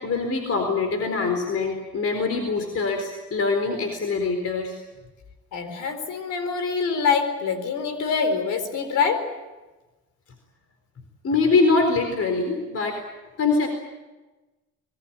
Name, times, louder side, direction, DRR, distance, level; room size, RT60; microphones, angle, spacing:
voice 1, 0.0-4.8 11.2-13.0 13.4-13.7, left 4 dB, 50° left, 5 dB, 4.2 m, -23 dB
voice 2, 5.5-9.3, left 5 dB, 80° left, 9 dB, 4.3 m, -25 dB
25.5 x 20.5 x 8.9 m, 1.2 s
cardioid pair, 90°, 30 cm